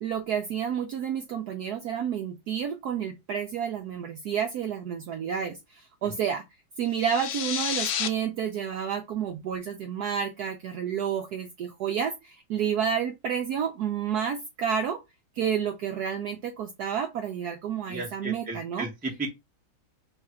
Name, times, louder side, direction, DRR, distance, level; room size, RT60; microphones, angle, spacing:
voice 1, 0.0-6.4 6.8-15.0 15.4-18.9, right 8 dB, 70° right, 0.9 m, -30 dB
sound 1, 6.9-8.1, left 8 dB, 75° left, 0.8 m, -30 dB
voice 2, 17.9-19.3, right 2 dB, 10° right, 0.5 m, -34 dB
3.2 x 2.4 x 4.3 m
omnidirectional pair, 2.1 m